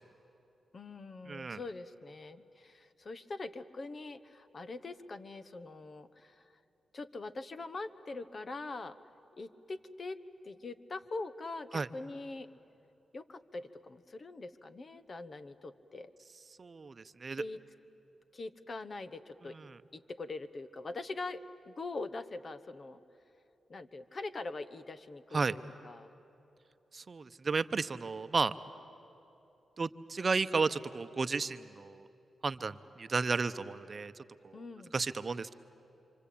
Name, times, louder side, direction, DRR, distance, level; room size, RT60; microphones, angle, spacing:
voice 1, 0.7-6.5 6.9-9.0 9.4-10.2 10.4-12.5 13.1-16.1 17.3-17.6 18.3-19.6 19.9-23.0 23.7-26.1 34.5-34.9, left 3 dB, 50° left, 13 dB, 1.1 m, -43 dB
voice 2, 1.3-1.6 11.7-11.9 16.6-17.4 25.3-25.5 26.9-28.5 29.8-32.0 32.4-34.1 34.4-34.6 34.9-35.5, right 4 dB, 50° right, 12 dB, 0.8 m, -33 dB
27.5 x 25.5 x 8.5 m, 2.9 s
cardioid pair, 60°, 0 cm